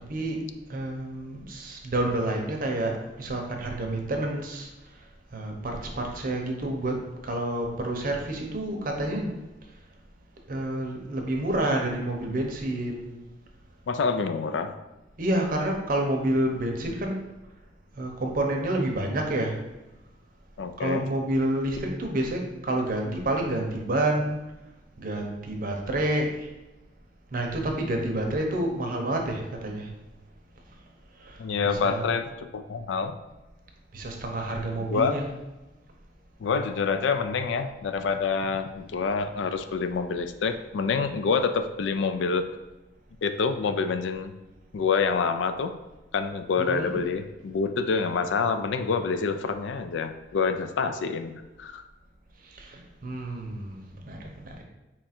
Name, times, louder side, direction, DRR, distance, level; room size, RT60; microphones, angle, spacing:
voice 1, 0.1-0.4 0.7-4.7 5.3-9.3 10.5-13.1 15.2-17.2 18.0-19.5 20.8-24.4 25.0-26.5 27.3-29.9 31.2-31.4 31.6-32.0 33.9-35.3 46.6-46.9 52.5-53.8 54.1-54.6, right 1 dB, 50° right, 1 dB, 0.7 m, -29 dB
voice 2, 13.9-14.8 20.6-21.1 31.4-33.1 34.9-35.1 36.4-42.5 43.2-44.3 44.7-45.7 46.1-51.8, left 5 dB, 75° left, 9 dB, 0.3 m, -27 dB
4.4 x 2.4 x 4.2 m, 1.0 s
head